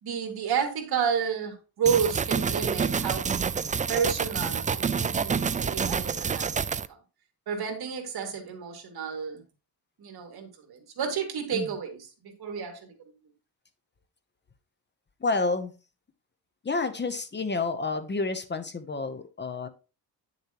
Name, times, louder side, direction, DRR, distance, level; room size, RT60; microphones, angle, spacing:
voice 1, 0.0-3.3 3.9-6.7 7.5-9.4 10.0-12.0 12.2-12.9, right 7 dB, 70° right, 4 dB, 2.5 m, -31 dB
sound 1, 1.9-6.9, right 6 dB, 20° right, 0.3 m, -28 dB
voice 2, 15.2-15.7 16.6-19.7, left 3 dB, 25° left, 10 dB, 0.9 m, -29 dB
10.0 x 6.8 x 3.0 m, 0.32 s
cardioid pair, 115°, 39 cm